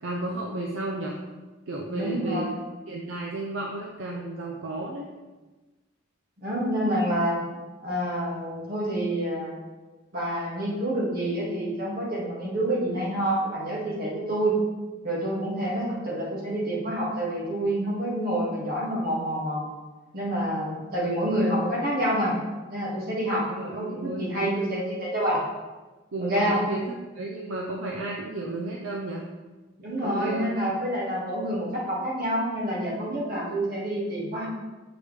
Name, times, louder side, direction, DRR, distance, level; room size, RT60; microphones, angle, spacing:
voice 1, 0.0-1.2 1.7-2.5 2.9-5.1 23.5-24.7 26.1-26.9 27.2-29.2 30.0-30.7, right 2 dB, 70° right, -1 dB, 0.6 m, -33 dB
voice 2, 1.9-2.5 6.4-7.4 7.8-9.6 10.1-14.6 15.0-19.7 20.1-22.3 22.7-23.4 23.7-25.4 26.2-26.6 29.8-34.5, right 1 dB, 50° right, -6 dB, 2.0 m, -27 dB
7.0 x 4.9 x 3.3 m, 1.2 s
head